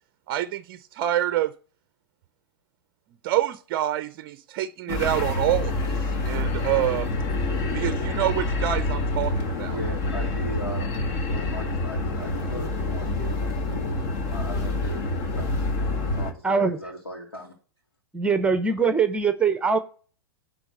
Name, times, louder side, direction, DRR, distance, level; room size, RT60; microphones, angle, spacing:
voice 1, 0.3-1.5 3.2-5.9 6.2-7.1 7.7-9.8, right 13 dB, 40° right, 0.5 m, -26 dB
sound 1, 4.9-16.3, left 2 dB, 45° left, 1.5 m, -27 dB
voice 2, 9.7-11.0 11.3-14.0 14.3-15.6 16.1-17.5, equal, 85° left, 2.2 m, -38 dB
voice 3, 16.4-16.8 18.1-19.8, right 5 dB, 10° right, 0.8 m, -22 dB
10.0 x 3.5 x 6.6 m
figure-of-eight pair, 105°, 12 cm